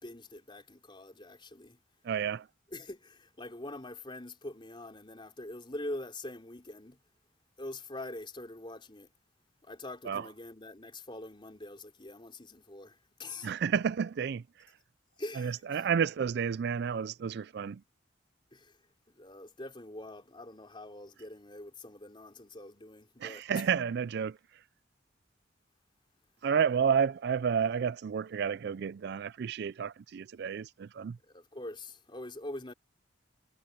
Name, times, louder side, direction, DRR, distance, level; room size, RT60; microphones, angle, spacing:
voice 1, 0.0-1.8 2.7-7.0 7.6-9.1 9.6-13.5 15.2-15.8 18.5-18.8 19.2-23.5 31.3-32.7, left 1 dB, 25° left, 3.7 m, -44 dB
voice 2, 2.0-2.5 10.1-10.3 13.4-14.4 15.4-17.8 23.2-24.4 26.4-31.2, right 7 dB, 60° right, 0.4 m, -31 dB
head